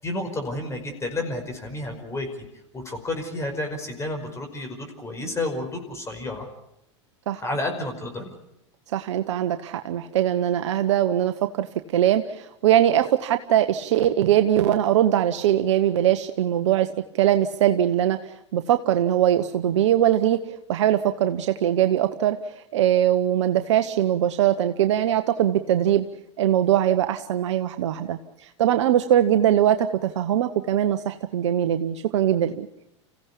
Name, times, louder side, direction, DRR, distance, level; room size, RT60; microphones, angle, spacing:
voice 1, 0.0-2.3 2.7-6.5 7.4-8.3, left 2 dB, 20° left, 4 dB, 5.3 m, -31 dB
voice 2, 8.9-11.7 11.9-20.4 20.7-22.4 22.7-26.0 26.4-28.2 28.6-32.7, right 11 dB, 70° right, 9 dB, 1.0 m, -21 dB
27.5 x 16.0 x 8.4 m, 0.81 s
hypercardioid pair, 100°, 15 cm